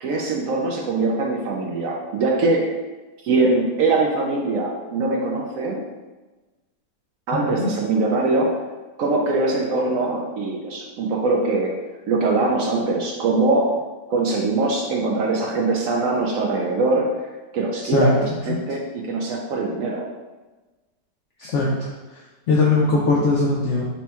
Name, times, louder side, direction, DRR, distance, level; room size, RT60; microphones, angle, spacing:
voice 1, 0.0-2.7 3.2-5.8 7.3-8.6 9.0-11.7 12.1-13.8 14.1-17.1 17.5-20.1, right 3 dB, 70° right, 0 dB, 0.8 m, -22 dB
voice 2, 21.4-21.9 22.5-23.9, left 3 dB, 75° left, -4 dB, 0.6 m, -20 dB
4.4 x 2.2 x 4.2 m, 1.2 s
omnidirectional pair, 1.9 m